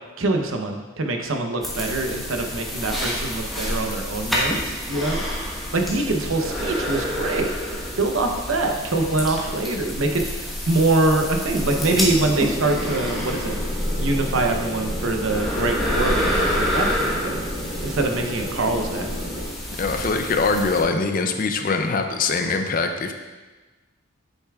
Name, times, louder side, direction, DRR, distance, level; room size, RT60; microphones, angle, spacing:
voice 1, 0.2-5.2 5.7-7.5 8.0-13.6 14.0-17.4 17.8-19.1, right 2 dB, 80° right, 3 dB, 0.8 m, -24 dB
sound 1, 1.6-20.8, equal, ahead, 1.2 m, -28 dB
sound 2, 11.5-19.4, equal, 30° right, 2.2 m, -33 dB
voice 2, 19.8-23.1, left 4 dB, 40° left, 6 dB, 0.5 m, -23 dB
8.1 x 6.7 x 2.4 m, 1.2 s
head